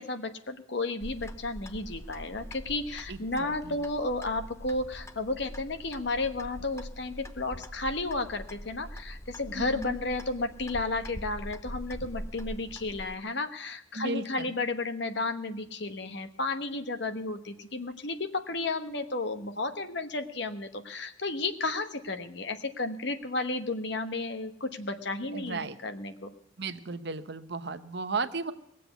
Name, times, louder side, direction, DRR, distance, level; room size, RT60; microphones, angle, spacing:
voice 1, 0.0-26.3, left 2 dB, 60° left, 8 dB, 1.2 m, -33 dB
Clock, 1.0-13.1, equal, 15° left, 0.6 m, -43 dB
voice 2, 3.1-3.8 9.6-10.0 13.9-14.5 25.3-25.8 26.6-28.5, right 3 dB, 55° right, 10 dB, 0.9 m, -35 dB
19.5 x 7.7 x 8.1 m, 0.76 s
head